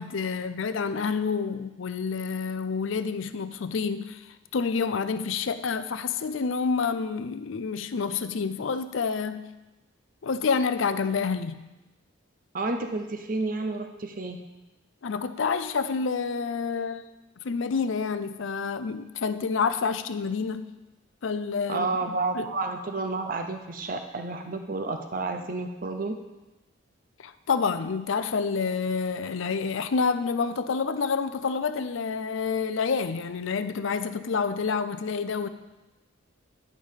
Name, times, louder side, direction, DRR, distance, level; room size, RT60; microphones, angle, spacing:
voice 1, 0.0-4.3 4.5-9.5 10.2-11.7 15.0-17.0 17.4-20.7 21.2-22.5 27.2-35.5, left 5 dB, 70° left, 12 dB, 0.5 m, -28 dB
voice 2, 12.5-14.4 21.7-26.2, right 3 dB, 40° right, 5 dB, 0.6 m, -30 dB
10.5 x 5.2 x 5.6 m, 1.1 s
head